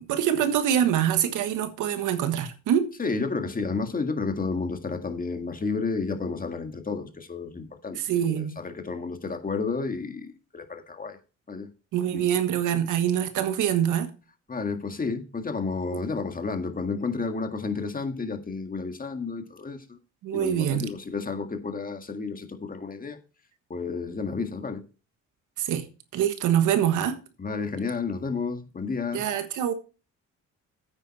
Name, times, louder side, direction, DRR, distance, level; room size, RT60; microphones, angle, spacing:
voice 1, 0.0-2.9 8.1-8.6 11.9-14.1 20.2-20.8 25.6-25.8 26.1-27.2 29.1-29.7, right 10 dB, 85° right, 1.5 m, -24 dB
voice 2, 3.0-11.2 11.5-11.7 12.1-12.2 14.5-20.0 20.3-23.2 23.7-24.8 27.4-29.2, left 4 dB, 30° left, 1.8 m, -31 dB
9.1 x 8.9 x 4.3 m
cardioid pair, 90°, 30 cm